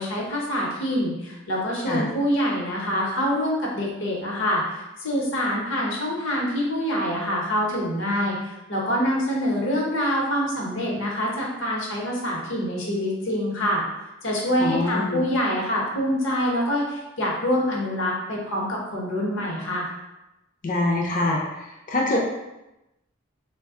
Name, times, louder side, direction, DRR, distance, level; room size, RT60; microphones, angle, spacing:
voice 1, 0.0-13.8 14.2-19.9, equal, 70° left, -3 dB, 0.9 m, -25 dB
voice 2, 14.6-15.2 20.6-21.4 21.9-22.2, left 2 dB, 40° left, -1 dB, 0.5 m, -24 dB
3.4 x 2.2 x 3.6 m, 0.95 s
head